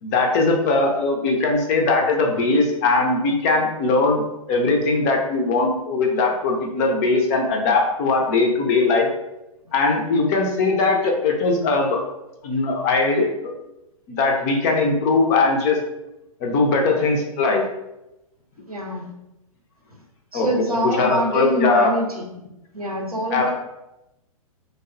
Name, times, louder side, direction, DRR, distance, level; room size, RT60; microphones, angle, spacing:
voice 1, 0.0-4.2 4.5-9.1 9.7-12.0 12.4-13.5 14.1-15.8 16.4-17.6 20.3-21.9 23.3-23.5, left 3 dB, 30° left, 2 dB, 0.4 m, -20 dB
voice 2, 18.7-19.1 20.3-22.2 22.7-23.5, right 1 dB, 85° right, 0 dB, 0.6 m, -25 dB
3.3 x 2.0 x 2.5 m, 0.92 s
figure-of-eight pair, 110°, 18 cm